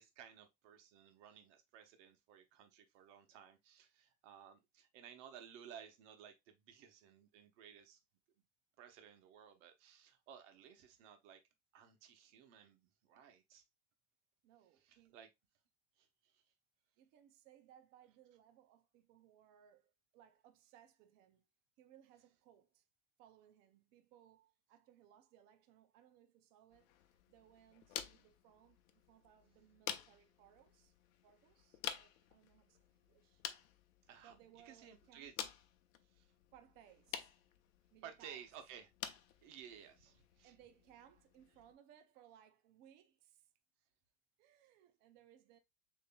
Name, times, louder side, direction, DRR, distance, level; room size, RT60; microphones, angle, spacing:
voice 1, 0.0-8.0 8.8-11.4 11.7-13.6 14.8-15.3 16.0-16.4 34.1-34.3 34.6-35.3 36.1-36.3 38.0-40.5, right 8 dB, 55° right, 1.1 m, -57 dB
voice 2, 14.4-15.2 17.0-21.5 21.8-22.9 23.2-27.0 27.3-30.9 31.2-33.4 34.2-35.3 36.5-37.3 37.9-38.4 40.4-43.5 44.4-45.6, right 10 dB, 25° right, 0.3 m, -65 dB
sound 1, 26.7-41.7, left 10 dB, 70° left, 0.8 m, -51 dB
6.9 x 3.0 x 2.2 m
supercardioid pair, 160°, 43 cm